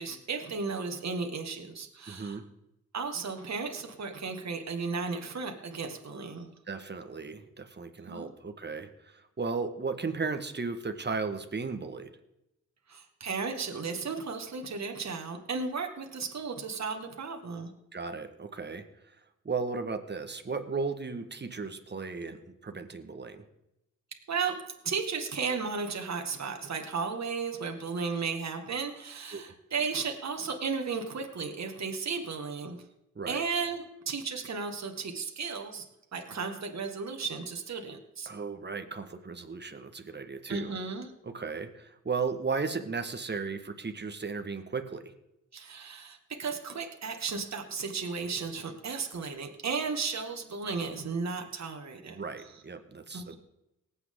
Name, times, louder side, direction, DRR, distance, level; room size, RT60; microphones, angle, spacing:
voice 1, 0.0-2.4 2.9-6.5 8.1-8.3 12.9-17.7 24.3-24.6 24.8-32.8 33.3-35.9 36.1-38.3 40.5-41.1 45.5-52.2 52.4-52.6 53.1-53.3, right 5 dB, 55° right, 4 dB, 2.0 m, -34 dB
voice 2, 2.1-2.4 6.7-12.1 17.9-18.8 19.4-23.4 29.3-29.4 33.1-33.4 38.2-40.7 41.2-45.1 52.1-53.3, right 4 dB, 35° right, 7 dB, 1.6 m, -35 dB
19.5 x 8.0 x 3.8 m, 0.87 s
cardioid pair, 55°, 32 cm